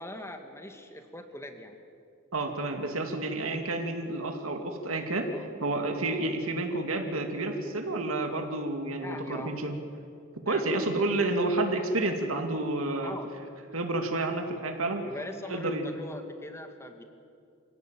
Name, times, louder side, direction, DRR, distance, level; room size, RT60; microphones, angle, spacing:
voice 1, 0.0-1.7 5.3-5.5 9.0-9.5 10.5-10.8 13.0-13.3 15.0-17.0, left 1 dB, 15° left, 6 dB, 1.9 m, -41 dB
voice 2, 2.3-5.3 5.6-9.7 10.5-13.2 13.7-15.0 15.5-15.9, right 2 dB, 85° right, 4 dB, 2.4 m, -30 dB
26.0 x 17.0 x 9.1 m, 2.4 s
head